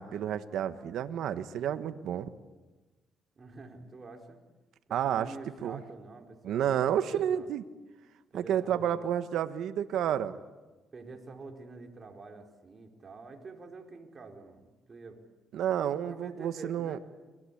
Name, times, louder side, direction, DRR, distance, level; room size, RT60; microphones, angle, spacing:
voice 1, 0.0-2.3 4.9-5.3 5.6-5.8 6.4-7.6 8.3-10.4 15.5-17.0, right 10 dB, 80° right, 10 dB, 1.2 m, -30 dB
voice 2, 3.4-4.4 4.9-7.5 8.3-9.1 10.9-15.2 15.8-17.0, right 3 dB, 35° right, 3 dB, 4.7 m, -47 dB
29.5 x 23.0 x 8.6 m, 1.2 s
cardioid pair, 90°, 0 cm